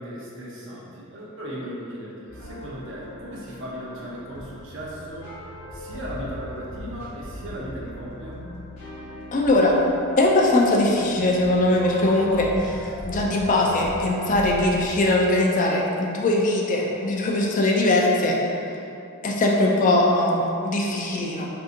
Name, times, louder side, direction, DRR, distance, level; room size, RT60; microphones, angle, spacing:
voice 1, 0.0-5.3 5.7-8.5, equal, 60° right, -5 dB, 0.7 m, -37 dB
sound 1, 2.3-14.9, left 1 dB, 75° left, 0.8 m, -39 dB
voice 2, 9.3-9.8 10.2-18.4 19.2-21.5, left 2 dB, 35° left, -2 dB, 0.3 m, -21 dB
3.7 x 2.7 x 2.5 m, 2.7 s
head